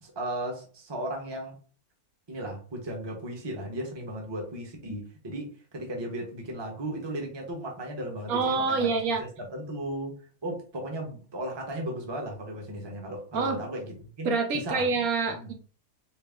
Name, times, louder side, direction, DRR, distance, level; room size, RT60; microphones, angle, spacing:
voice 1, 0.0-1.5 2.3-8.9 9.2-10.1 10.4-14.3 14.6-14.9 15.3-15.5, right 1 dB, 20° right, 1 dB, 0.8 m, -36 dB
voice 2, 8.3-9.2 13.3-13.6 14.2-15.5, right 4 dB, 75° right, 5 dB, 1.1 m, -26 dB
4.6 x 2.0 x 3.6 m, 0.41 s
omnidirectional pair, 1.6 m